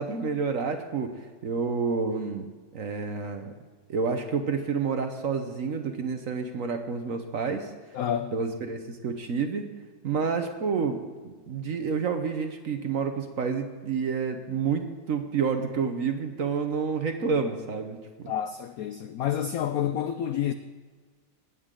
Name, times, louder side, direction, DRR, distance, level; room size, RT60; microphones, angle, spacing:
voice 1, 0.0-2.4 2.7-3.5 3.9-7.7 8.3-9.6 10.0-18.3, right 5 dB, 55° right, 1.1 m, -29 dB
voice 2, 7.9-8.4 18.3-20.5, left 10 dB, 80° left, 0.8 m, -29 dB
20.0 x 8.3 x 3.8 m
omnidirectional pair, 2.1 m